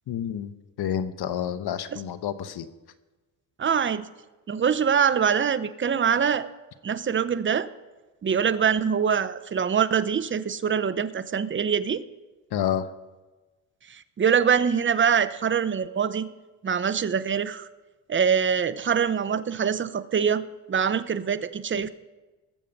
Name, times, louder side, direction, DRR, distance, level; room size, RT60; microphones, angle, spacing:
voice 1, 0.1-0.5 0.8-2.7 12.5-12.9, left 9 dB, 55° left, 13 dB, 1.0 m, -29 dB
voice 2, 3.6-4.1 4.5-6.5 6.8-7.7 8.2-12.0 13.9-16.3 16.6-17.7 18.1-21.9, right 7 dB, 25° right, 14 dB, 0.7 m, -24 dB
19.5 x 7.5 x 5.3 m, 1.2 s
cardioid pair, 85°, 45 cm